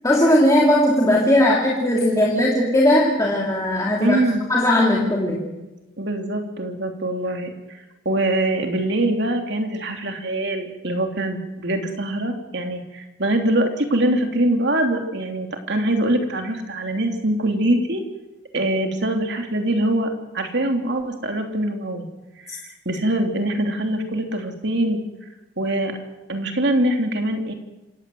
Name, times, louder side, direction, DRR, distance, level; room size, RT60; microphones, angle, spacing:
voice 1, 0.0-4.2 4.5-5.5 22.5-22.6, left 1 dB, 15° left, -3 dB, 2.9 m, -18 dB
voice 2, 4.0-4.5 6.0-7.8 8.0-18.0 18.5-22.1 22.4-25.0 25.6-26.0 26.3-27.5, right 1 dB, 55° right, 4 dB, 3.0 m, -23 dB
27.0 x 17.5 x 7.7 m, 1.0 s
head